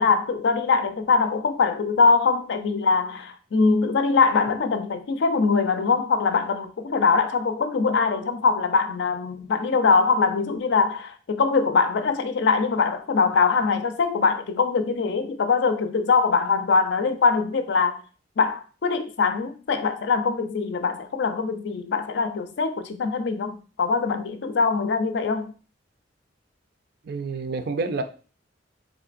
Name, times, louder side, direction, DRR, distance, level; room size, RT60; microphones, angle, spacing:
voice 1, 0.0-18.0 18.4-25.5, left 4 dB, 70° left, 0.4 m, -22 dB
voice 2, 27.0-28.0, right 3 dB, 60° right, 0.4 m, -28 dB
3.6 x 3.1 x 2.5 m
head